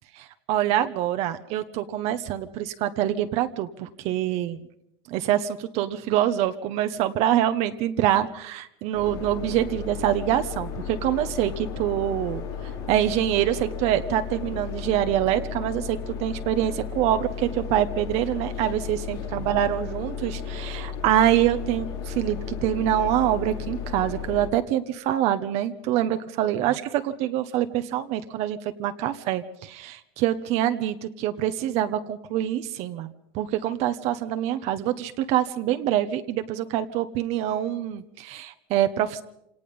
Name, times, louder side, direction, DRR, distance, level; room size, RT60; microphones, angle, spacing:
voice 1, 0.2-4.6 5.1-12.4 12.9-26.8 27.2-39.2, right 12 dB, 55° right, 9 dB, 1.1 m, -25 dB
sound 1, 8.9-24.5, left 7 dB, 80° left, 4.9 m, -34 dB
26.0 x 18.5 x 5.4 m, 0.80 s
supercardioid pair, 120°, 13 cm